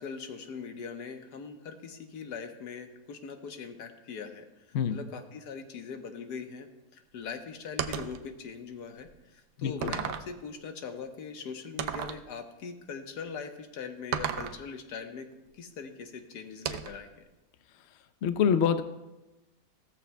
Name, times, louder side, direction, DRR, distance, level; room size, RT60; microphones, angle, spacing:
voice 1, 0.0-4.4 4.9-15.3 15.6-17.3, left 6 dB, 90° left, 5 dB, 1.6 m, -41 dB
sound 1, 7.8-8.2 9.0-9.1 9.8-10.3 11.8-12.2 14.1-14.6 16.6-17.1, right 9 dB, 70° right, 0.9 m, -33 dB
voice 2, 9.6-9.9 18.2-18.8, left 7 dB, 60° left, 10 dB, 0.7 m, -26 dB
16.5 x 14.0 x 2.2 m, 1.0 s
omnidirectional pair, 1.7 m